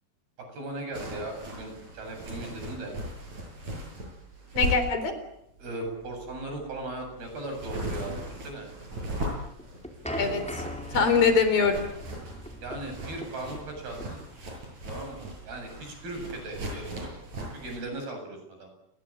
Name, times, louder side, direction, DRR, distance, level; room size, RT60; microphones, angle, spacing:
voice 1, 0.5-2.9 5.6-8.2 8.4-8.7 12.6-14.2 14.9-17.1 17.4-18.7, right 2 dB, 85° right, 5 dB, 9.7 m, -38 dB
sound 1, 0.9-17.8, right 1 dB, 50° right, 9.0 m, -38 dB
voice 2, 4.5-5.1 10.2-10.6 10.9-11.9, left 5 dB, 70° left, 9 dB, 5.9 m, -23 dB
sound 2, 9.4-16.3, equal, ahead, 4.4 m, -40 dB
29.0 x 23.0 x 8.8 m, 0.80 s
omnidirectional pair, 4.3 m